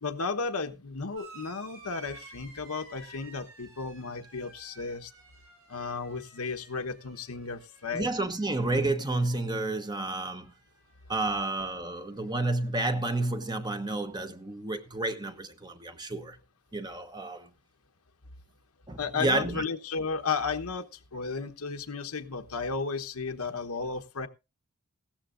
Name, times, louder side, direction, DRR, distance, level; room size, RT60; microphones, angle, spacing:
voice 1, 0.0-5.1 5.7-8.1 19.0-20.8 21.1-24.3, left 4 dB, 80° left, 1.1 m, -34 dB
sound 1, 1.1-10.2 10.4-11.2 12.3-12.4, right 3 dB, 70° right, 6.7 m, -54 dB
voice 2, 7.9-10.5 11.1-16.4 16.7-17.5 18.9-19.6, right 2 dB, 20° right, 1.0 m, -30 dB
16.5 x 13.5 x 2.6 m
head